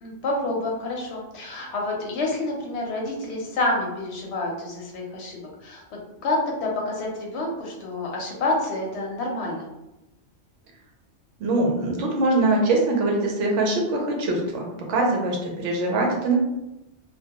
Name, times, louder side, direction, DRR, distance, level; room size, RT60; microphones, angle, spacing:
voice 1, 0.0-9.7, left 2 dB, 65° left, -1 dB, 0.8 m, -28 dB
voice 2, 11.4-16.4, right 2 dB, 75° right, 0 dB, 0.9 m, -23 dB
2.3 x 2.2 x 2.8 m, 0.94 s
omnidirectional pair, 1.3 m